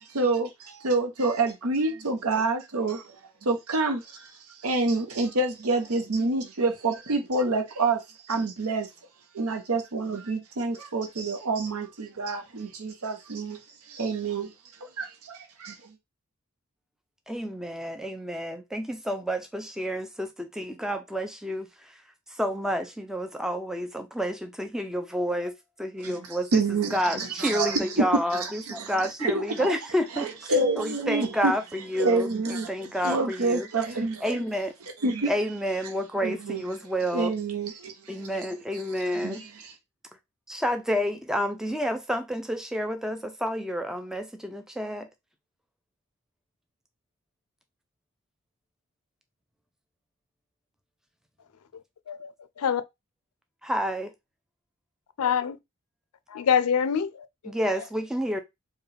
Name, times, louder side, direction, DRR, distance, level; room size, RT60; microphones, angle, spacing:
voice 1, 0.0-3.1 3.4-8.0 8.3-8.9 9.3-13.6 13.9-14.5 14.8-15.8 26.0-26.1 26.5-28.0 28.3-28.9 29.2-29.7 30.2-31.5 32.0-34.4 35.0-35.3 36.2-36.6 37.1-38.3 39.1-39.7, right 3 dB, 80° right, 0.8 m, -28 dB
voice 2, 17.3-22.0 22.3-25.5 25.8-26.6 26.9-33.7 34.2-34.7 35.2-37.3 38.1-39.4 40.5-45.1 53.6-54.1 57.5-58.4, equal, ahead, 0.3 m, -30 dB
voice 3, 52.1-52.8 55.2-55.6 56.3-57.5, left 7 dB, 85° left, 0.4 m, -26 dB
4.6 x 2.2 x 3.2 m
head